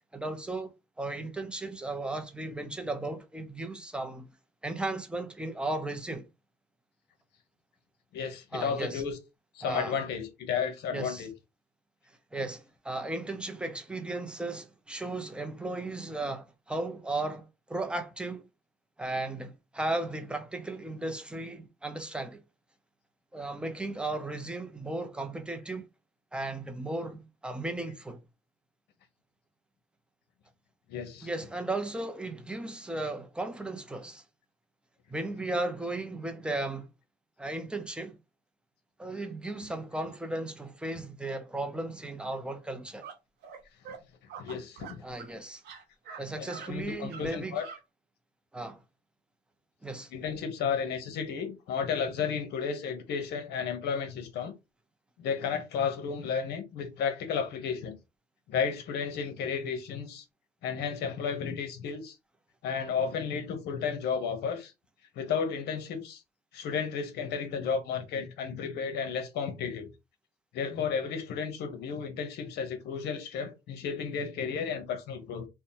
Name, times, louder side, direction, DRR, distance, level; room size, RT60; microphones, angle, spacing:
voice 1, 0.1-4.3 4.6-6.3 8.5-9.0 9.6-10.0 10.9-11.3 12.3-18.5 19.0-22.4 23.3-25.9 26.3-28.2 31.2-34.2 35.1-36.9 37.4-38.2 39.0-43.1 45.0-45.6 46.2-47.6 48.5-48.8 49.8-50.1, right 2 dB, 5° right, 0.5 m, -35 dB
voice 2, 8.1-9.2 9.5-11.3 30.9-31.3 44.4-45.0 46.4-47.7 50.1-54.5 55.2-58.0 58.5-60.2 60.6-62.2 62.6-64.7 65.2-66.2 66.5-69.9 70.5-75.5, left 6 dB, 75° left, 0.9 m, -33 dB
sound 1, 43.0-43.1 43.4-43.6 43.8-44.0 44.3-45.3 45.6-46.2 46.5-46.7 47.1-47.2 47.6-47.8, right 6 dB, 75° right, 0.8 m, -44 dB
2.8 x 2.1 x 2.7 m
cardioid pair, 110°, 17 cm